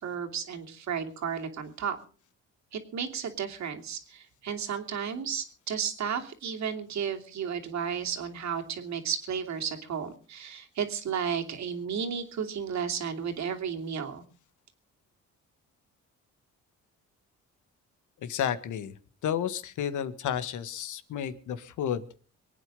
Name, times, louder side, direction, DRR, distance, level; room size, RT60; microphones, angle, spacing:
voice 1, 0.0-2.0 2.7-14.2, right 7 dB, 65° right, 4 dB, 2.9 m, -33 dB
voice 2, 18.2-18.9 19.2-22.2, left 9 dB, 75° left, 12 dB, 1.7 m, -32 dB
24.0 x 9.2 x 5.3 m, 0.39 s
cardioid pair, 90°, 30 cm